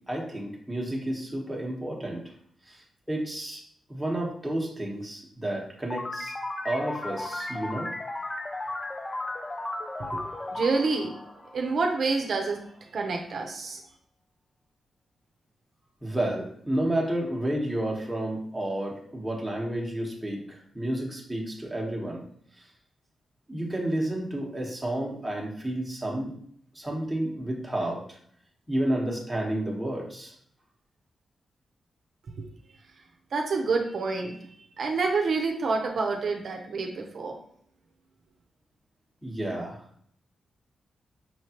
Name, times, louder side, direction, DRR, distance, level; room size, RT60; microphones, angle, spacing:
voice 1, 0.1-2.2 2.7-2.8 3.1-3.6 3.9-6.3 6.6-7.9 16.0-22.2 23.5-26.3 26.7-28.2 28.7-30.3 39.2-39.8, right 1 dB, 5° right, -2 dB, 1.1 m, -31 dB
sound 1, 5.9-12.1, left 2 dB, 20° left, 0.3 m, -35 dB
voice 2, 10.1-11.2 11.5-12.6 12.9-13.8 32.4-32.5 33.3-34.4 34.8-37.4, right 4 dB, 60° right, 2 dB, 0.7 m, -28 dB
5.7 x 3.1 x 2.9 m, 0.65 s
wide cardioid pair, 135°, 0 cm